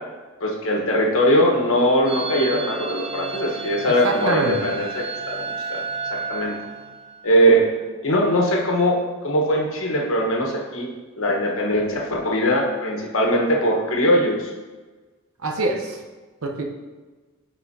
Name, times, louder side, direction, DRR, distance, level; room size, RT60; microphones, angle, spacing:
voice 1, 0.4-5.8 6.1-6.5 7.2-7.7 8.0-10.9 11.2-14.5, equal, 70° left, -1 dB, 1.3 m, -21 dB
sound 1, 2.1-7.4, right 4 dB, 25° right, 0.4 m, -32 dB
voice 2, 3.9-4.7 15.4-16.0 16.4-16.6, right 2 dB, 75° right, 1 dB, 0.9 m, -24 dB
9.9 x 4.1 x 2.8 m, 1.3 s
head